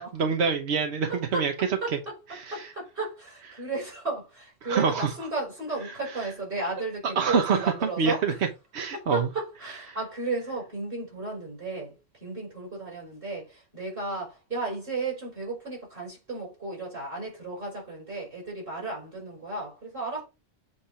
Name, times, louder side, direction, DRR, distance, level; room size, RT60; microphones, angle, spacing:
voice 1, 0.0-2.0 2.3-2.7 3.5-3.6 4.6-5.1 5.8-6.3 7.2-8.5 8.7-9.3 9.6-10.0, right 5 dB, 90° right, 1.2 m, -27 dB
voice 2, 1.1-1.5 1.8-2.1 2.5-8.2 8.9-11.9 12.2-20.3, right 3 dB, 60° right, 5.4 m, -34 dB
8.2 x 3.3 x 5.6 m
omnidirectional pair, 1.1 m